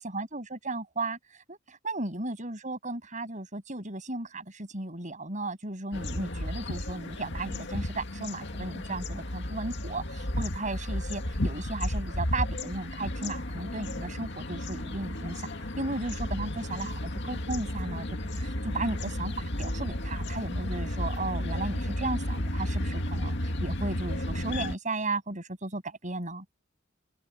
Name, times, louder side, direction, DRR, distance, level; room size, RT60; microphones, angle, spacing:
voice 1, 0.0-18.1 18.3-26.4, right 2 dB, 40° right, 7.5 m, -35 dB
sound 1, 5.9-24.8, left 1 dB, 60° left, 2.3 m, -33 dB
head